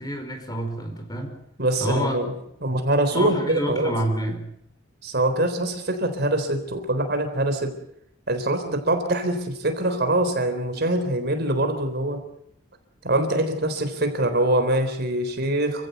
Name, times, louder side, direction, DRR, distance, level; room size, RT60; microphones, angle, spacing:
voice 1, 0.0-1.4 1.8-2.2 3.1-4.5, equal, 20° left, 5 dB, 4.8 m, -28 dB
voice 2, 1.6-2.3 2.6-3.9 5.0-7.7 8.3-12.2 13.0-15.9, right 1 dB, 50° right, 7 dB, 3.8 m, -24 dB
28.0 x 16.5 x 8.2 m, 0.75 s
head